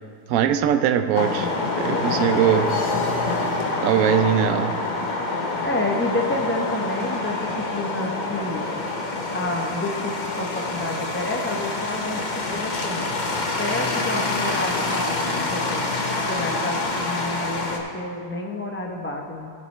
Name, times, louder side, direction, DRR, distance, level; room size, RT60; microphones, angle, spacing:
voice 1, 0.3-1.5 1.8-2.7 3.8-4.7, right 9 dB, 70° right, 8 dB, 0.9 m, -21 dB
sound 1, 1.1-17.8, left 3 dB, 40° left, 0.7 m, -26 dB
Crash cymbal, 2.7-4.5, left 2 dB, 5° right, 2.5 m, -44 dB
voice 2, 5.6-8.7 9.3-12.2 12.5-13.1 13.6-19.5, left 2 dB, 15° left, -1 dB, 0.4 m, -29 dB
15.0 x 6.7 x 3.2 m, 2.2 s
omnidirectional pair, 1.7 m